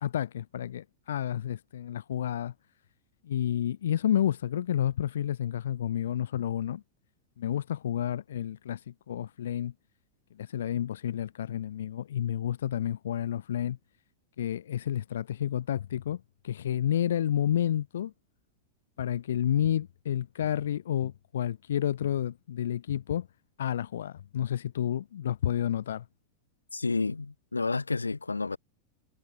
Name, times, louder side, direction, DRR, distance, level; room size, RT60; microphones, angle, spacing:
voice 1, 0.0-2.5 3.2-6.8 7.4-9.7 10.4-13.8 14.4-18.1 19.0-23.3 23.6-26.0, left 10 dB, 60° left, 0.3 m, -30 dB
voice 2, 26.7-28.6, left 3 dB, 80° left, 1.1 m, -30 dB
figure-of-eight pair, 90°, 0 cm